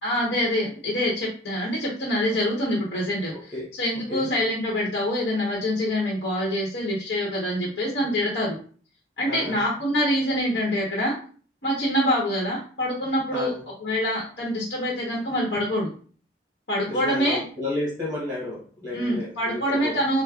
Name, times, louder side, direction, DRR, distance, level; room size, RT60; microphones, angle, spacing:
voice 1, 0.0-8.6 9.2-11.2 11.6-13.5 13.8-15.9 16.7-17.4 18.9-20.2, equal, 65° left, -4 dB, 1.0 m, -25 dB
voice 2, 3.3-3.7 4.1-4.3 9.3-9.6 13.3-13.6 16.9-20.0, left 2 dB, 20° right, -4 dB, 0.9 m, -32 dB
5.1 x 2.1 x 2.3 m, 0.42 s
head